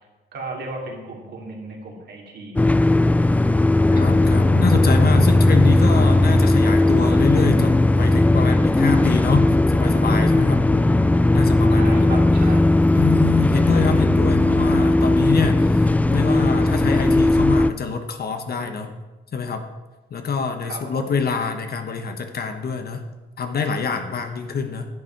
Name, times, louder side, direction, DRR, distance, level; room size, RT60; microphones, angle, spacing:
voice 1, 0.3-2.6 11.7-12.6 20.6-21.1, right 3 dB, 55° right, -1 dB, 3.0 m, -35 dB
sound 1, 2.6-17.7, left 2 dB, 5° left, 0.3 m, -17 dB
voice 2, 3.9-10.7 11.3-12.2 12.9-18.9 19.3-19.6 20.1-23.0 23.4-24.9, left 5 dB, 50° left, 6 dB, 1.2 m, -25 dB
11.0 x 8.4 x 4.6 m, 1.2 s
cardioid pair, 90°, 20 cm